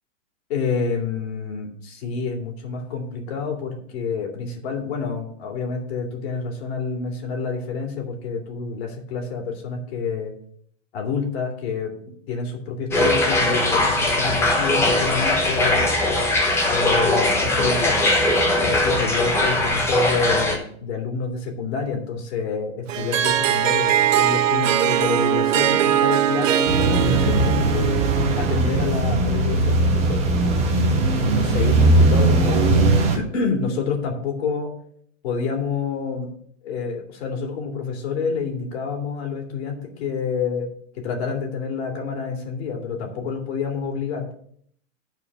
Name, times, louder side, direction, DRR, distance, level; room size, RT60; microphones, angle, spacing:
voice 1, 0.5-10.3 10.9-11.9 12.3-16.0 16.7-18.1 18.6-28.0 28.3-30.2 31.2-32.6 33.1-34.7 35.2-36.3 36.6-40.7 40.9-44.3, left 5 dB, 55° left, 2 dB, 2.4 m, -28 dB
sound 1, 12.9-20.6, left 1 dB, 5° left, 0.7 m, -20 dB
Harp, 22.9-28.7, right 11 dB, 90° right, 0.8 m, -21 dB
sound 2, 26.7-33.2, right 2 dB, 15° right, 1.1 m, -19 dB
8.7 x 4.5 x 6.7 m, 0.64 s
supercardioid pair, 165°, 37 cm